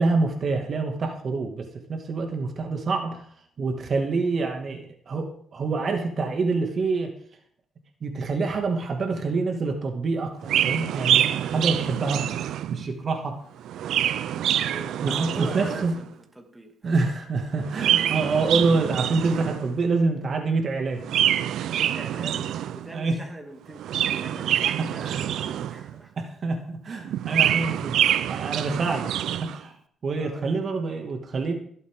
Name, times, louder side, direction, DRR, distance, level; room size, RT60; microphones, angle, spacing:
voice 1, 0.0-3.2 3.6-7.1 8.0-12.3 12.7-13.4 15.0-16.0 16.8-21.0 22.3-22.4 22.9-23.2 24.8-25.2 26.2-29.1 29.4-29.7 30.0-31.5, right 3 dB, 50° right, 3 dB, 2.1 m, -26 dB
Chirp tweet, 10.4-12.9 13.6-16.0 17.6-19.8 21.0-22.9 23.7-26.0 27.0-29.6, right 11 dB, 75° right, 0.6 m, -26 dB
voice 2, 14.7-17.0 21.8-26.2 30.2-30.4, right 1 dB, 10° right, 2 dB, 2.5 m, -42 dB
24.0 x 8.3 x 3.8 m, 0.62 s
cardioid pair, 90°, 0 cm